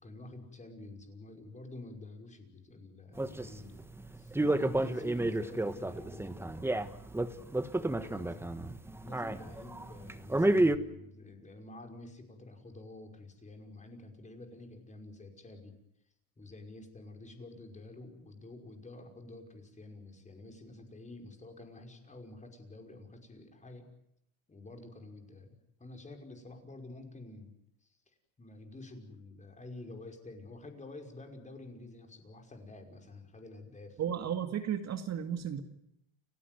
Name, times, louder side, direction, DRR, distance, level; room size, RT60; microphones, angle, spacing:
voice 1, 0.0-3.9 4.1-7.4 7.7-8.5 9.0-15.8 16.4-23.9 24.5-27.5 27.8-34.0, left 2 dB, 15° left, 4 dB, 5.6 m, -49 dB
guitar tape techniques, 3.2-10.8, right 1 dB, 5° right, 1.3 m, -31 dB
voice 2, 34.0-35.6, right 9 dB, 40° right, 7 dB, 2.2 m, -34 dB
29.5 x 17.0 x 9.4 m, 0.77 s
cardioid pair, 125°, 40 cm